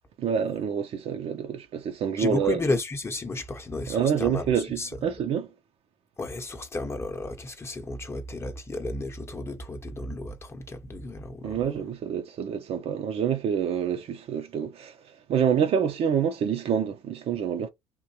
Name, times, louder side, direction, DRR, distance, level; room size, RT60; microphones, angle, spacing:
voice 1, 0.2-2.6 3.9-5.5 11.4-15.0 15.3-17.7, right 8 dB, 55° right, 0.7 m, -27 dB
voice 2, 2.2-4.5 4.8-4.9 6.2-11.6, left 2 dB, 20° left, 0.9 m, -32 dB
3.7 x 2.6 x 2.9 m
supercardioid pair, 85°, 12 cm